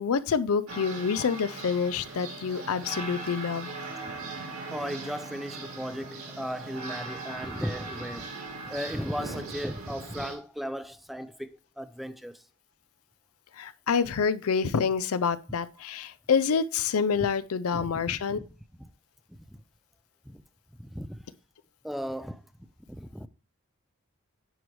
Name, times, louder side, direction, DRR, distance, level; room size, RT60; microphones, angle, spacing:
voice 1, 0.0-3.7 13.6-18.4, left 6 dB, 90° left, 0.5 m, -27 dB
sound 1, 0.7-10.4, right 3 dB, 90° right, 2.3 m, -39 dB
voice 2, 4.7-8.3 8.7-12.4 17.7-18.5 18.8-18.9 19.3-19.6 20.3-20.4 20.8-21.2 21.8-22.4 22.9-23.3, equal, ahead, 0.3 m, -36 dB
10.0 x 4.7 x 3.1 m
head